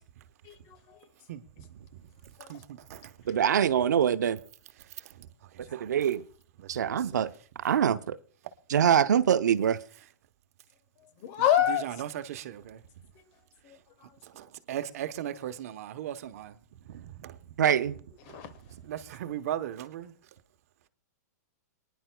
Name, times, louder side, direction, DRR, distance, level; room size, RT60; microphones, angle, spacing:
voice 1, 0.4-1.0 2.4-2.5 11.2-11.9 13.6-13.8 18.3-18.5, left 11 dB, 40° left, 1.1 m, -27 dB
voice 2, 1.3-3.1 4.8-6.0 6.6-7.2 11.7-12.8 14.2-16.6 16.8-17.5 18.3-20.1, right 11 dB, 60° right, 1.0 m, -39 dB
voice 3, 3.3-4.4 5.7-6.2 6.7-7.3 7.6-8.2 8.7-9.8 17.6-17.9, right 9 dB, 90° right, 0.7 m, -24 dB
27.0 x 10.0 x 2.2 m
hypercardioid pair, 150°, 9 cm